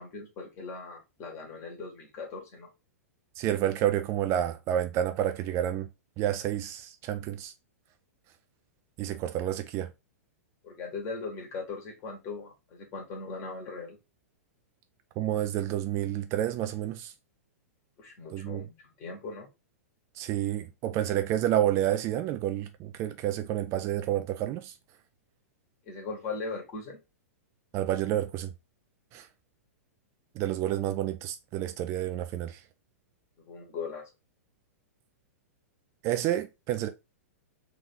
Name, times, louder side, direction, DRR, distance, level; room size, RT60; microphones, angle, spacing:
voice 1, 0.0-2.7 10.6-14.0 18.0-19.5 25.9-27.0 33.4-34.0, left 4 dB, 35° left, 1.8 m, -39 dB
voice 2, 3.4-5.9 6.2-7.5 9.0-9.9 15.2-17.1 18.3-18.7 20.2-24.7 27.7-28.5 29.1-29.3 30.4-32.6 36.0-36.9, right 12 dB, 35° right, 0.4 m, -29 dB
3.6 x 2.9 x 3.7 m
hypercardioid pair, 110°, 8 cm